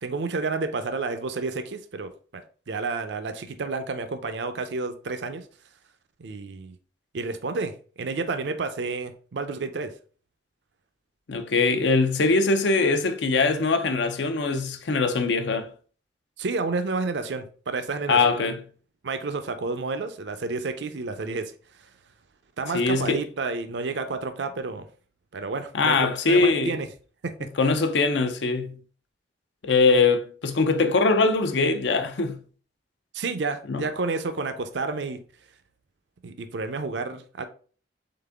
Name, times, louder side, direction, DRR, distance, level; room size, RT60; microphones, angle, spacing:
voice 1, 0.0-5.4 6.2-6.7 7.1-9.9 16.4-18.6 19.0-21.5 22.6-24.9 25.3-26.9 27.2-27.5 33.1-35.2 36.2-37.5, right 3 dB, 70° right, 0.5 m, -30 dB
voice 2, 11.3-15.7 18.1-18.6 22.7-23.2 25.7-26.8 27.4-28.8 29.6-32.4 33.7-33.9, left 3 dB, 75° left, 0.6 m, -22 dB
3.9 x 3.6 x 3.4 m
head